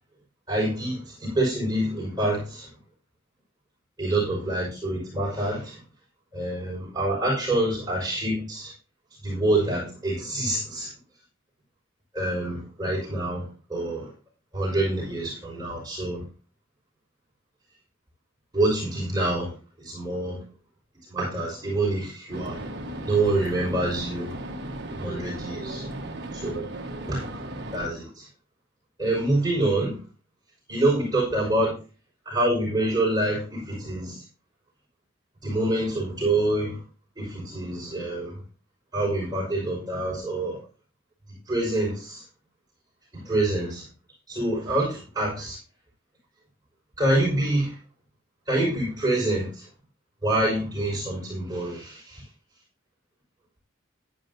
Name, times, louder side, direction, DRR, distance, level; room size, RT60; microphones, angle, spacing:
voice 1, 0.5-2.7 4.0-5.8 6.3-8.7 9.2-10.9 12.1-14.1 14.5-16.2 18.5-19.5 19.8-20.4 21.1-22.6 23.1-24.3 25.0-25.8 26.4-26.7 27.1-27.3 27.7-28.2 29.0-30.0 30.7-31.7 32.3-34.2 35.4-36.8 37.2-38.4 38.9-40.6 41.5-42.2 43.1-43.8 44.3-45.6 47.0-47.7 48.5-49.6 50.2-52.2, right 1 dB, 20° right, -4 dB, 5.7 m, -26 dB
sound 1, 22.3-27.9, right 1 dB, 55° right, 1.5 m, -36 dB
11.5 x 11.0 x 2.8 m, 0.34 s
head